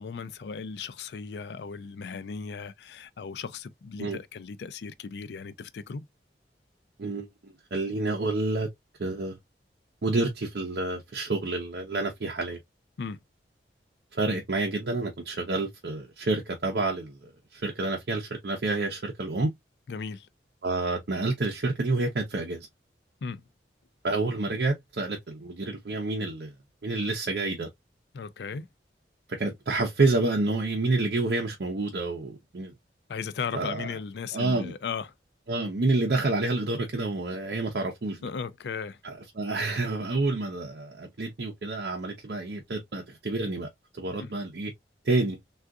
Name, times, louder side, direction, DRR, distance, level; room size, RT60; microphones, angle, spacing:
voice 1, 0.0-6.1 13.0-13.2 19.9-20.3 23.2-23.4 28.1-28.7 33.1-35.1 38.2-39.0 44.2-44.3, left 5 dB, 70° left, 0.4 m, -36 dB
voice 2, 7.7-8.7 9.0-9.4 10.0-12.6 14.1-19.5 20.6-22.7 24.0-26.5 26.8-27.7 29.4-32.7 33.5-33.9 34.3-34.7 35.5-38.3 39.0-43.7 43.9-44.7 45.0-45.4, right 2 dB, 65° right, 0.6 m, -28 dB
3.6 x 2.4 x 2.3 m
head